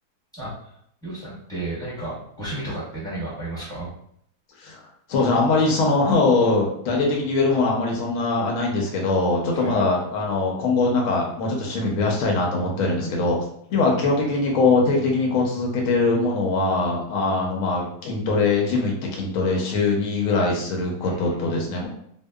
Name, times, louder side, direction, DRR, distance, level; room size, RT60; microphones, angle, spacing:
voice 1, 0.3-0.7 1.0-3.9 9.5-9.7 21.0-21.4, right 2 dB, 5° left, -9 dB, 0.8 m, -33 dB
voice 2, 5.1-13.4 13.7-21.9, left 3 dB, 65° left, 0 dB, 0.9 m, -22 dB
2.8 x 2.1 x 2.2 m, 0.69 s
omnidirectional pair, 1.8 m